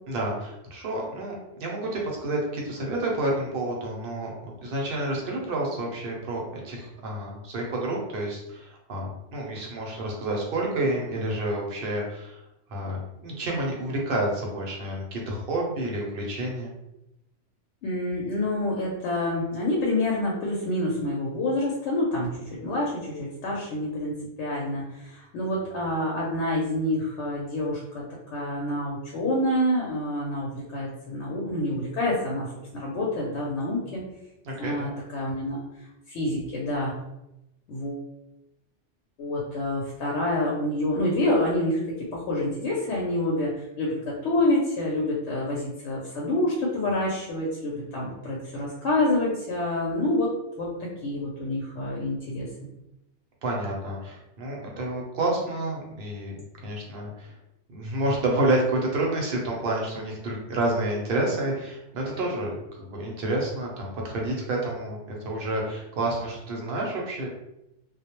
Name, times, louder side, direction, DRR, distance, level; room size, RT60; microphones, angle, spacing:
voice 1, 0.1-12.4 12.7-16.7 34.4-34.9 53.4-57.3 57.7-67.3, right 1 dB, 55° right, -1 dB, 0.8 m, -29 dB
voice 2, 17.8-28.0 28.3-34.0 34.6-35.6 36.1-36.9 37.7-38.1 39.2-50.3 50.6-52.5, left 1 dB, 70° left, -4 dB, 0.9 m, -27 dB
2.2 x 2.0 x 2.9 m, 0.88 s
omnidirectional pair, 1.3 m